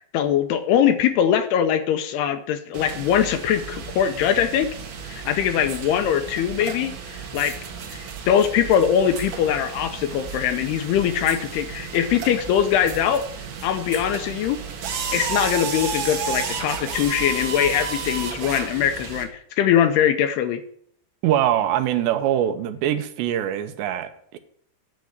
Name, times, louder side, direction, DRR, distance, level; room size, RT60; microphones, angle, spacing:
voice 1, 0.0-4.8 5.0-7.5 7.9-13.3 13.6-14.6 15.1-20.6, left 9 dB, 80° left, 2.6 m, -22 dB
sound 1, 2.7-19.2, right 6 dB, 60° right, 1.9 m, -33 dB
voice 2, 21.2-24.4, right 11 dB, 85° right, 3.0 m, -23 dB
9.5 x 6.6 x 8.0 m
omnidirectional pair, 5.1 m